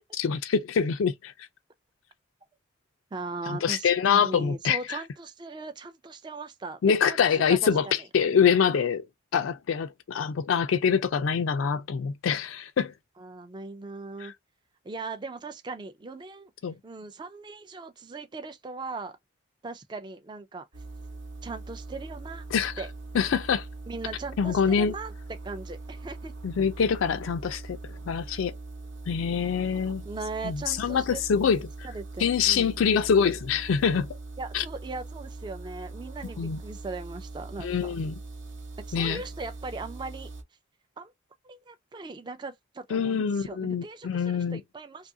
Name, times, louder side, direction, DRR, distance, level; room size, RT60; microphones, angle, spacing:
voice 1, 0.2-1.3 3.5-5.0 6.8-7.9 8.1-9.0 9.3-12.9 14.2-14.3 16.6-16.8 22.5-22.7 23.1-23.6 24.4-24.9 26.4-27.8 28.1-28.5 29.1-30.0 30.4-31.6 32.2-34.1 34.5-34.6 36.4-36.6 37.6-38.2 38.9-39.2 42.9-44.6, left 6 dB, 75° left, 0.4 m, -25 dB
voice 2, 3.1-7.2 7.5-8.1 13.2-14.3 14.8-16.5 16.8-19.2 19.6-20.7 21.4-22.5 22.8-22.9 23.9-26.3 30.0-31.2 31.8-32.8 34.4-37.9 38.8-40.3 41.0-41.1 41.4-45.1, right 3 dB, 20° right, 0.3 m, -39 dB
sound 1, 20.7-40.4, right 2 dB, 60° right, 0.7 m, -41 dB
2.7 x 2.4 x 2.6 m
head